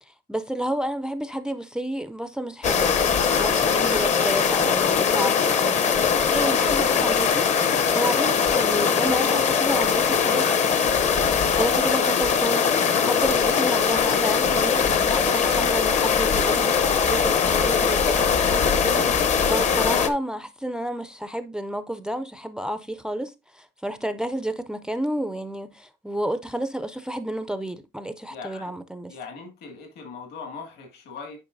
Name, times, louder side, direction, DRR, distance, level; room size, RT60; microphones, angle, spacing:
voice 1, 0.0-10.8 11.3-12.7 13.0-29.1, right 1 dB, 5° right, 0.3 m, -31 dB
sound 1, 2.6-20.1, left 6 dB, 40° left, 0.7 m, -21 dB
voice 2, 28.3-28.7 29.1-31.4, left 5 dB, 65° left, 2.0 m, -39 dB
10.0 x 5.1 x 2.6 m
cardioid pair, 160°, 18 cm